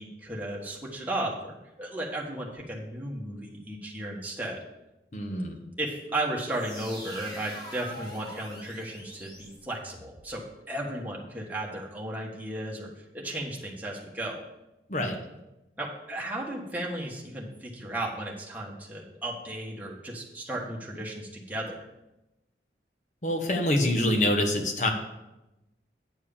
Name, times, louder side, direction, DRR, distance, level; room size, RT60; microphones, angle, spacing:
voice 1, 0.0-4.6 5.8-14.4 15.8-21.9, right 1 dB, 10° right, -3 dB, 1.4 m, -35 dB
voice 2, 5.1-5.6 14.9-15.2 23.2-24.9, left 1 dB, 45° left, 4 dB, 1.1 m, -25 dB
sound 1, 6.5-10.3, equal, 25° left, 1.7 m, -44 dB
9.0 x 4.7 x 7.1 m, 0.96 s
head